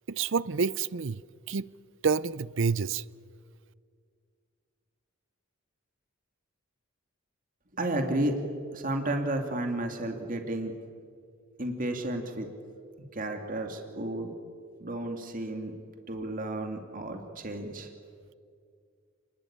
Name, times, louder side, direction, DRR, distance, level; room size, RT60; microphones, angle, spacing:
voice 1, 0.1-1.2 1.5-1.7 2.0-3.0, right 5 dB, 65° right, 0.6 m, -28 dB
voice 2, 7.7-8.4 8.7-10.7 11.6-12.5 13.1-14.3 14.8-15.7 16.1-17.9, right 1 dB, 40° right, 2.5 m, -32 dB
30.0 x 21.0 x 8.9 m
head